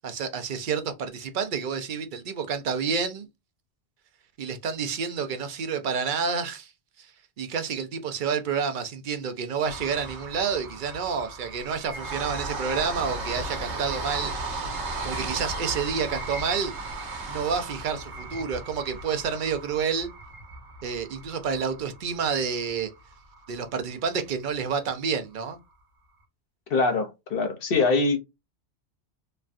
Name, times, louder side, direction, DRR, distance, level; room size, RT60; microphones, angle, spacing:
voice 1, 0.0-3.3 4.4-6.7 7.0-7.1 7.4-14.3 15.0-16.7 17.3-20.1 20.8-22.9 23.5-25.6, right 6 dB, 55° right, 0.6 m, -29 dB
sound 1, 9.6-23.7 24.2-24.3 24.5-24.6, right 2 dB, 85° right, 1.1 m, -36 dB
voice 2, 26.7-28.2, left 3 dB, 60° left, 0.9 m, -23 dB
3.1 x 2.2 x 2.4 m
omnidirectional pair, 1.1 m